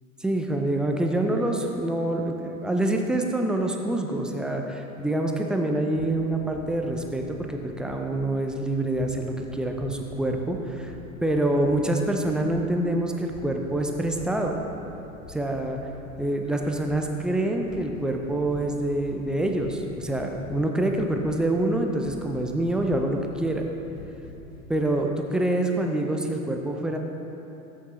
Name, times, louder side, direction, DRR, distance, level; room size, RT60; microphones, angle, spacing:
voice 1, 0.2-10.9 11.2-14.6 15.3-15.8 16.2-23.6 24.7-27.0, right 1 dB, ahead, 2 dB, 0.3 m, -26 dB
sound 1, 5.8-24.8, left 2 dB, 50° left, 1.1 m, -45 dB
14.0 x 6.3 x 3.0 m, 2.9 s
hypercardioid pair, 90°, 41 cm